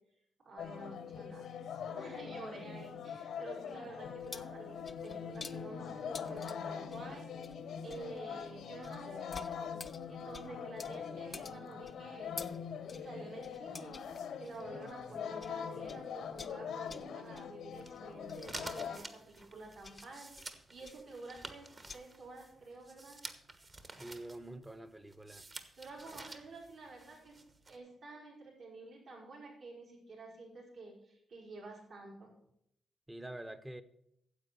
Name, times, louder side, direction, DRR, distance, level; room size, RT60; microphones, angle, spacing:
voice 1, 0.4-1.5 1.9-12.3 12.9-21.7 21.9-23.2 25.8-27.4 27.7-32.3, right 3 dB, 70° right, -6 dB, 4.6 m, -50 dB
sound 1, 0.6-19.0, left 7 dB, 85° left, 1.1 m, -43 dB
sound 2, 4.0-15.6 15.9-22.0, left 4 dB, 35° left, 0.6 m, -52 dB
sound 3, 17.7-27.8, right 3 dB, 35° right, 1.2 m, -51 dB
voice 2, 24.0-25.4 33.1-33.8, right 1 dB, 10° right, 13 dB, 0.8 m, -46 dB
9.7 x 7.5 x 6.6 m, 0.76 s
cardioid pair, 95°, 0 cm